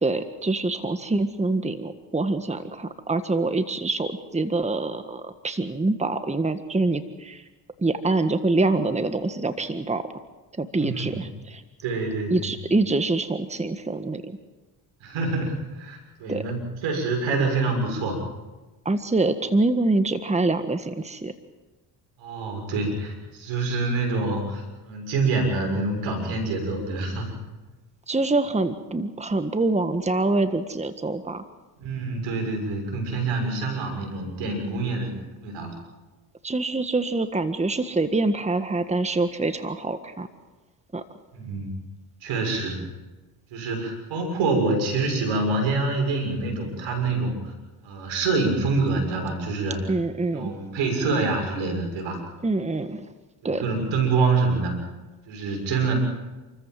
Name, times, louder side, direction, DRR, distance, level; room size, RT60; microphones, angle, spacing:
voice 1, 0.0-7.4 7.8-10.0 10.6-11.6 12.3-14.4 16.3-16.4 18.8-21.3 28.1-31.5 36.4-40.3 40.9-41.0 49.9-50.5 52.4-53.1 53.4-53.6, right 2 dB, 15° right, 9 dB, 1.6 m, -25 dB
voice 2, 10.8-11.2 11.8-12.5 15.0-18.2 22.2-27.3 31.8-35.7 41.3-41.8 42.2-42.8 43.5-47.5 47.8-49.9 50.3-52.2 53.4-54.8 55.3-55.9, right 3 dB, 75° right, 3 dB, 6.8 m, -26 dB
28.5 x 14.5 x 7.7 m, 1.2 s
hypercardioid pair, 60°, 46 cm